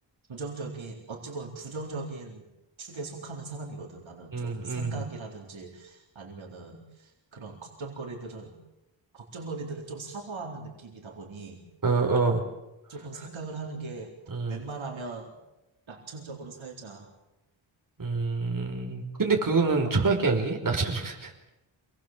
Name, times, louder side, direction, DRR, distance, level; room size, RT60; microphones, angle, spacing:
voice 1, 0.3-2.5 2.8-8.5 9.1-11.6 12.9-14.1 14.4-15.3 15.9-17.1 19.8-19.9, right 3 dB, 70° right, 1 dB, 4.1 m, -39 dB
voice 2, 4.3-5.0 11.8-12.4 14.3-14.6 18.0-21.3, right 4 dB, 40° right, 2 dB, 5.4 m, -26 dB
27.5 x 20.0 x 7.6 m, 0.95 s
cardioid pair, 75°, 48 cm